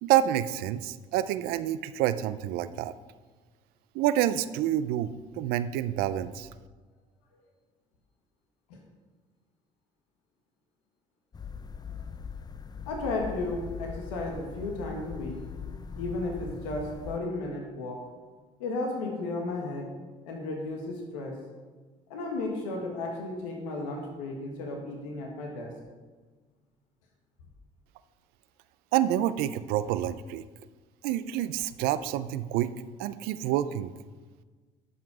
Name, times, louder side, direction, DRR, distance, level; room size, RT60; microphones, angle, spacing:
voice 1, 0.0-2.9 3.9-6.5 28.9-30.4 31.0-32.7 33.0-33.9, right 12 dB, 75° right, 14 dB, 0.5 m, -28 dB
sound 1, 11.3-17.2, left 6 dB, 25° left, 0.5 m, -41 dB
voice 2, 12.9-15.4 15.9-18.0 18.6-19.9 20.2-21.4 22.1-25.7, left 2 dB, 90° left, 1 dB, 1.5 m, -34 dB
12.0 x 5.8 x 4.9 m, 1.4 s
supercardioid pair, 70°, 16 cm